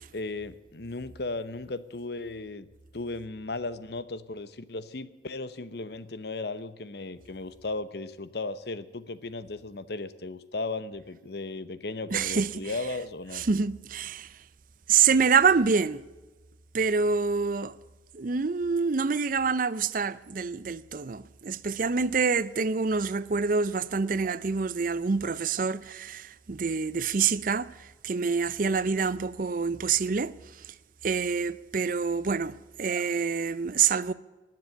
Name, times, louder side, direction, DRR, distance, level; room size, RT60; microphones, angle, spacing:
voice 1, 0.1-2.7 2.9-13.4, left 3 dB, 60° left, 0.9 m, -36 dB
voice 2, 12.1-12.5 13.3-14.4 14.9-16.0 16.7-17.8 18.1-30.7 31.0-34.1, right 5 dB, 45° right, 0.5 m, -26 dB
19.5 x 7.6 x 9.6 m
head